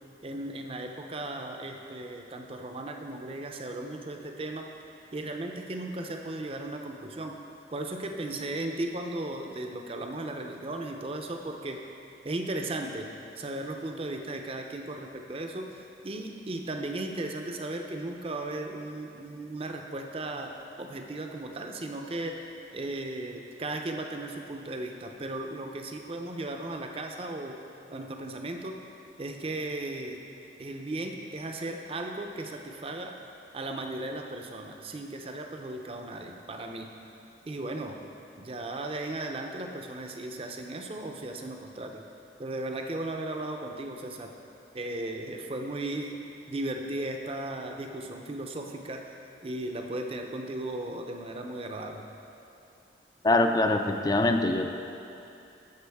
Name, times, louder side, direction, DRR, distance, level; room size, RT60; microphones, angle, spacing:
voice 1, 0.2-4.7 5.1-7.4 7.7-11.8 12.2-13.1 13.4-22.5 22.7-27.6 27.9-28.8 29.2-30.2 30.6-33.2 33.5-36.9 37.5-38.0 38.4-42.0 42.4-44.3 44.7-52.0, right 2 dB, 30° right, 3 dB, 0.5 m, -36 dB
voice 2, 53.2-54.7, left 2 dB, 20° left, 6 dB, 0.3 m, -23 dB
13.0 x 5.0 x 3.5 m, 2.7 s
head